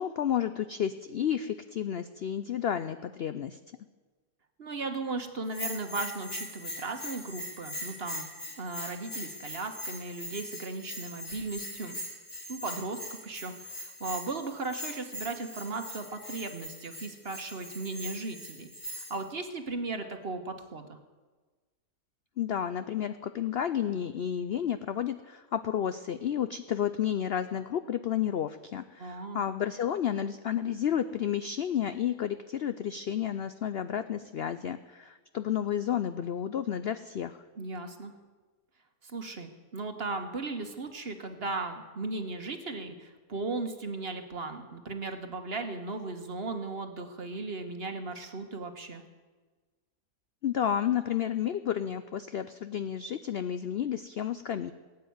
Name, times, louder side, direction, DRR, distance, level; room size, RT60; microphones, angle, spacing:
voice 1, 0.0-3.6 22.4-37.4 50.4-54.7, left 9 dB, 70° left, 11 dB, 0.5 m, -31 dB
voice 2, 4.6-8.3 8.6-12.0 12.5-21.0 29.0-29.4 37.6-38.1 39.0-49.0, right 3 dB, 40° right, 6 dB, 1.4 m, -37 dB
Bell, 5.5-19.2, left 1 dB, 45° left, 3.2 m, -41 dB
18.0 x 8.4 x 9.4 m, 1.3 s
omnidirectional pair, 1.7 m